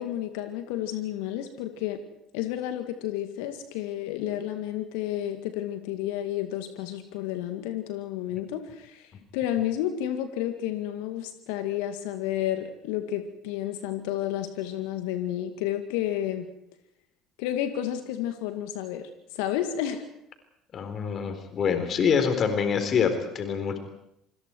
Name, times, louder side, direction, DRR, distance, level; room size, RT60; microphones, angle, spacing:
voice 1, 0.0-2.0 2.3-16.5 17.4-20.0, left 11 dB, 65° left, 8 dB, 2.1 m, -31 dB
voice 2, 20.7-23.8, left 6 dB, 40° left, 7 dB, 4.1 m, -25 dB
26.5 x 26.0 x 4.7 m, 0.78 s
figure-of-eight pair, 60°, 0 cm